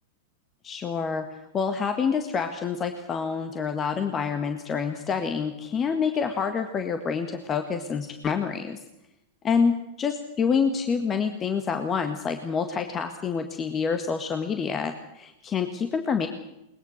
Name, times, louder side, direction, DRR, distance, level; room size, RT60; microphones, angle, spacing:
voice 1, 0.6-1.3 1.5-8.8 9.4-9.7 10.0-16.3, left 6 dB, 25° left, 7 dB, 1.8 m, -27 dB
22.0 x 20.5 x 6.6 m, 0.90 s
hypercardioid pair, 100°, 0 cm